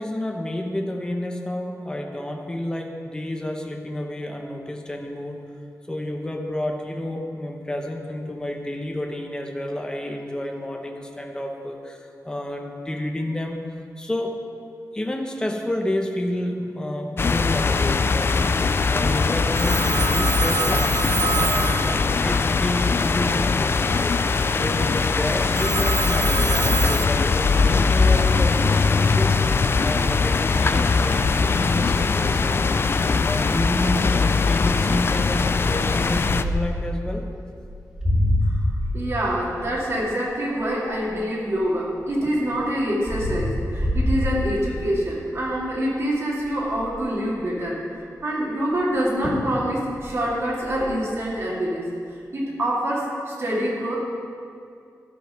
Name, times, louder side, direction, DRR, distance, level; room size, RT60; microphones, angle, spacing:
voice 1, 0.0-5.4 5.9-13.6 14.0-14.4 14.9-20.9 21.3-24.2 24.5-31.3 31.6-37.2, left 1 dB, 10° left, 2 dB, 0.9 m, -30 dB
sound 1, 17.2-36.4, left 4 dB, 40° left, 0.3 m, -21 dB
Telephone, 19.6-22.6 25.6-27.1, right 7 dB, 75° right, 0.4 m, -27 dB
sound 2, 33.5-33.8 34.3-34.6 35.5-36.9 37.6-41.5 42.0-45.0 45.5-45.8 46.0-46.1 46.4-47.1 48.8-48.9 49.2-49.6 49.9-50.9, left 1 dB, 10° right, 2.2 m, -27 dB
voice 2, 38.9-47.8 48.2-54.0, equal, 45° right, -4 dB, 2.4 m, -26 dB
13.0 x 5.7 x 5.7 m, 2.4 s
wide cardioid pair, 150°, 6 cm